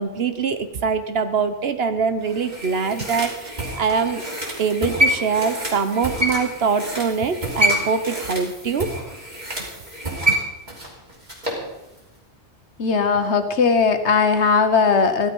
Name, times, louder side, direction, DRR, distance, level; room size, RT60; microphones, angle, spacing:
voice 1, 0.0-4.2 4.6-8.9 10.3-10.4, right 5 dB, 65° right, 10 dB, 1.2 m, -23 dB
sound 1, 2.2-11.7 12.0-12.1, equal, 40° right, 3.4 m, -26 dB
voice 2, 12.8-15.3, left 5 dB, 80° left, 8 dB, 1.5 m, -18 dB
15.5 x 12.0 x 5.5 m, 1.0 s
omnidirectional pair, 1.1 m